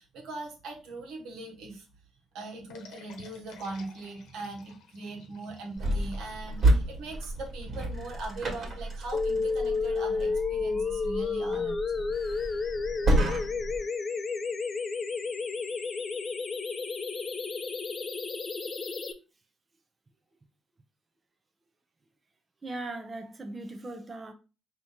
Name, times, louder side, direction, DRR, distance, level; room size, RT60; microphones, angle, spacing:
voice 1, 0.0-1.8 2.3-12.1, right 3 dB, 90° right, 1.3 m, -40 dB
sound 1, 2.7-8.0, left 6 dB, 90° left, 0.9 m, -53 dB
sound 2, 5.8-13.8, right 1 dB, 50° right, 1.7 m, -30 dB
sound 3, 9.1-19.1, left 4 dB, 40° left, 0.6 m, -31 dB
voice 2, 22.6-24.3, right 2 dB, 30° right, 0.7 m, -39 dB
4.1 x 2.9 x 3.6 m
cardioid pair, 90°, 0 cm